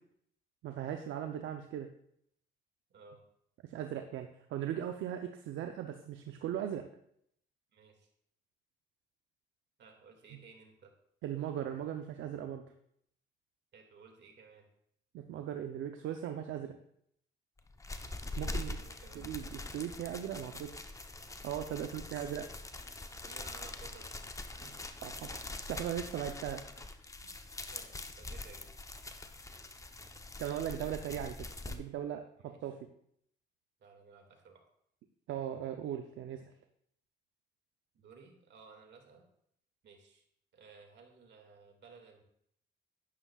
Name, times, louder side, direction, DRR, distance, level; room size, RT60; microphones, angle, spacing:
voice 1, 0.6-1.9 3.6-6.8 11.2-12.6 15.1-16.7 18.4-18.8 19.1-20.8 21.4-22.4 25.0-26.6 30.4-32.8 35.3-36.4, right 10 dB, 80° right, 6 dB, 0.7 m, -38 dB
voice 2, 2.9-3.2 7.7-8.1 9.8-10.9 13.7-14.7 18.3-19.4 21.7-22.3 23.1-24.1 24.6-24.8 27.2-27.4 27.7-28.7 30.8-30.9 32.4-32.7 33.8-34.6 37.9-39.3 39.8-40.2 40.5-42.2, right 5 dB, 65° right, 3 dB, 2.1 m, -57 dB
sound 1, 17.6-31.8, left 2 dB, 15° left, 0.8 m, -44 dB
11.0 x 9.9 x 2.4 m, 0.71 s
cardioid pair, 90°, 20 cm